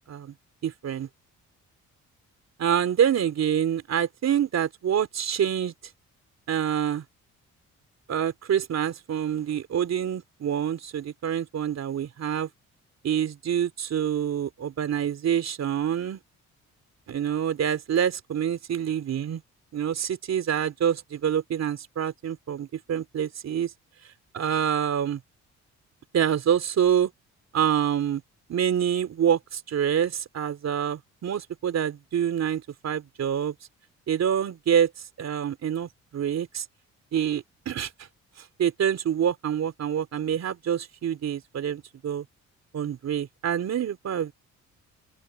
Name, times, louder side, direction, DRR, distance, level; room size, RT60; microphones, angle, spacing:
voice 1, 0.6-1.1 2.6-5.7 6.5-7.0 8.1-12.5 13.0-16.2 17.1-19.4 19.7-23.7 24.3-25.2 26.1-27.1 27.5-28.2 28.5-33.6 34.1-34.9 35.2-36.7 37.1-37.9 38.4-42.3 42.7-44.3, right 9 dB, 60° right, 3.4 m, -26 dB
open air
cardioid pair, 90°, 30 cm